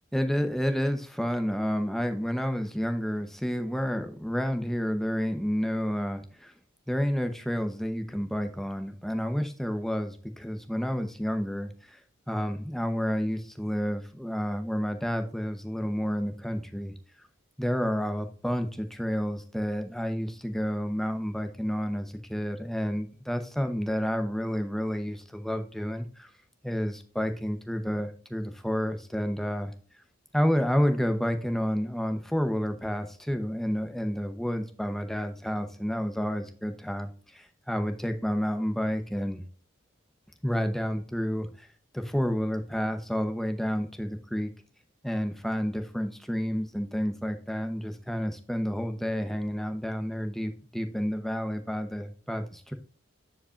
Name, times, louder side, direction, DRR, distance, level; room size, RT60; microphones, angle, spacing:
voice 1, 0.1-6.5 6.9-12.0 12.3-16.9 17.6-26.3 26.6-29.7 30.3-39.4 40.4-41.7 41.9-44.5 45.0-52.7, equal, ahead, 7 dB, 0.7 m, -30 dB
9.9 x 5.0 x 2.4 m, 0.42 s
head